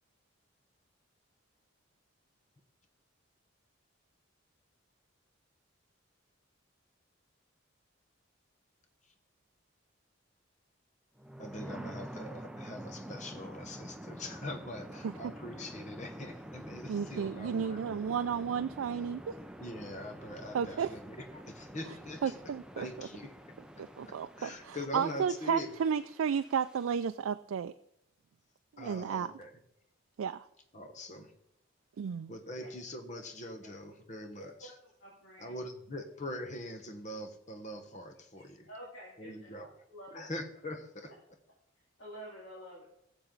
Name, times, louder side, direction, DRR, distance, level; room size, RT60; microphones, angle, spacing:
sound 1, 11.2-27.1, right 1 dB, 5° right, 0.5 m, -47 dB
voice 1, 11.4-18.0 19.6-22.3 22.8-23.3 24.4-25.7 28.8-29.5 30.7-31.3 32.3-34.7 35.4-38.7 39.2-39.8 40.1-41.1, left 1 dB, 35° left, 6 dB, 1.2 m, -43 dB
voice 2, 16.9-19.4 20.5-20.9 21.9-22.0 22.2-23.1 23.8-27.7 28.7-29.3 30.2-30.5 32.0-32.3, right 7 dB, 90° right, 9 dB, 0.4 m, -33 dB
voice 3, 34.4-34.7 35.0-35.6 35.9-36.0 38.7-40.3 42.0-42.9, equal, 65° left, -5 dB, 2.9 m, -49 dB
18.5 x 7.1 x 3.9 m, 0.76 s
head